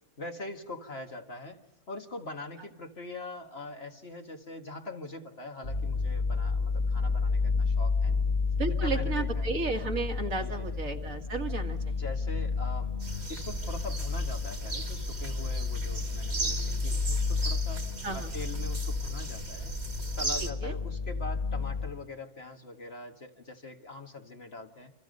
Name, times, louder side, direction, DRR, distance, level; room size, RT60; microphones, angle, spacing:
voice 1, 0.2-1.6 1.9-8.3 8.6-9.5 10.4-10.7 12.0-17.9 18.1-19.8 20.2-24.9, left 2 dB, 45° left, 4 dB, 2.0 m, -43 dB
sound 1, 5.6-21.9, left 4 dB, 30° left, 1.6 m, -31 dB
voice 2, 8.6-11.9 18.0-18.3 20.6-20.7, right 3 dB, 60° right, 4 dB, 2.2 m, -33 dB
sound 2, 13.0-20.5, right 3 dB, 45° right, 2.1 m, -37 dB
29.0 x 27.0 x 5.4 m, 0.96 s
omnidirectional pair, 1.6 m